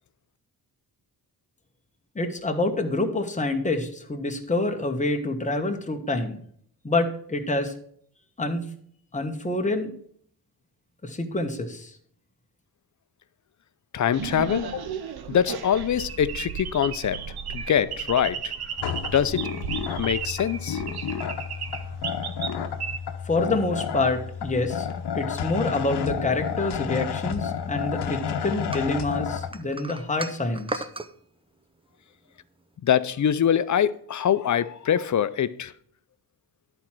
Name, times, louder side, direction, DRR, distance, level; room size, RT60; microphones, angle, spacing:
voice 1, 2.1-6.4 6.8-7.7 8.4-8.7 9.1-9.9 11.0-11.9 23.3-24.9 25.1-30.9, left 2 dB, 20° left, 1.3 m, -27 dB
voice 2, 13.9-14.9 15.3-17.2 17.5-18.5 19.1-19.5 20.0-20.8 32.8-35.7, left 9 dB, 45° left, 0.6 m, -24 dB
sound 1, 14.1-23.0, right 8 dB, 70° right, 0.8 m, -34 dB
sound 2, 18.8-29.5, left 7 dB, 80° left, 0.9 m, -31 dB
sound 3, 28.7-31.1, right 2 dB, 15° right, 0.6 m, -35 dB
10.5 x 4.4 x 6.0 m
cardioid pair, 90°, 39 cm